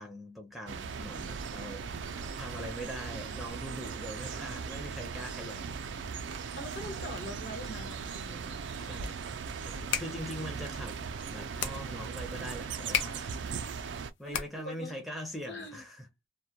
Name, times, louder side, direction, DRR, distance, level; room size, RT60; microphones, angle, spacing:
voice 1, 0.0-1.9 2.4-5.6 8.8-9.3 9.5-11.0 11.3-13.4 14.2-16.1, equal, ahead, 0.5 m, -42 dB
sound 1, 0.7-14.1, right 5 dB, 75° right, 0.4 m, -38 dB
voice 2, 2.1-2.4 6.5-8.7 14.2-15.0 15.5-15.8, left 1 dB, 60° left, 1.0 m, -43 dB
sound 2, 9.6-14.9, left 8 dB, 90° left, 0.5 m, -38 dB
2.2 x 2.1 x 2.7 m
head